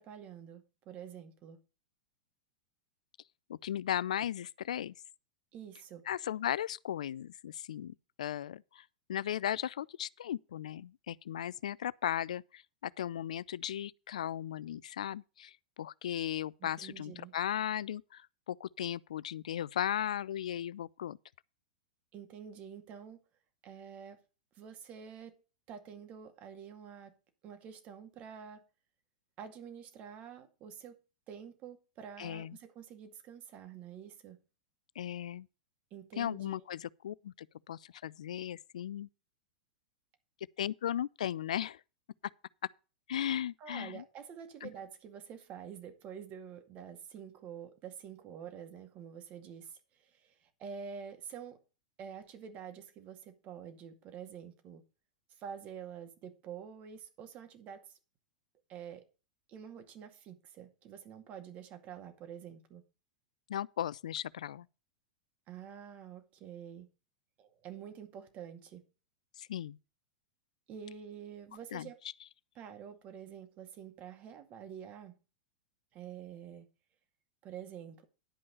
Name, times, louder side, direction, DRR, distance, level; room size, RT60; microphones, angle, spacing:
voice 1, 0.0-1.6 5.5-6.0 16.6-17.3 22.1-23.2 23.6-24.2 24.6-25.4 25.7-27.1 27.4-28.6 29.4-31.0 31.3-34.4 35.9-36.6 43.6-51.6 52.0-54.8 55.4-57.9 58.7-59.0 59.5-62.8 65.5-66.9 67.4-68.8 70.7-72.0 72.6-75.2 75.9-76.7 77.4-78.0, right 8 dB, 40° right, 2.1 m, -48 dB
voice 2, 3.5-4.9 6.1-21.2 32.2-32.6 35.0-35.5 36.2-39.1 40.6-41.8 43.1-44.0 44.6-44.7 63.5-64.7 69.4-69.8 71.7-71.9, left 10 dB, 70° left, 0.4 m, -37 dB
11.0 x 5.3 x 6.7 m
figure-of-eight pair, 100°, 4 cm